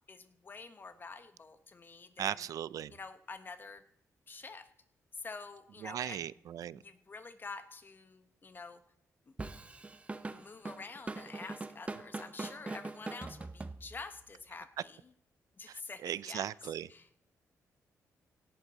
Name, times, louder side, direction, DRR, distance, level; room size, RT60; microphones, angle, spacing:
voice 1, 0.1-2.4 2.9-3.8 4.3-4.7 5.1-6.2 6.7-8.8 9.3-9.4 10.3-15.1 15.6-16.5 16.9-17.2, left 4 dB, 35° left, 0.9 m, -48 dB
voice 2, 2.2-2.9 5.8-6.8 15.7-16.9, right 10 dB, 70° right, 0.4 m, -38 dB
Drum kit / Drum, 9.4-14.2, right 3 dB, 20° right, 0.8 m, -42 dB
17.5 x 11.5 x 4.0 m
cardioid pair, 110°, 6 cm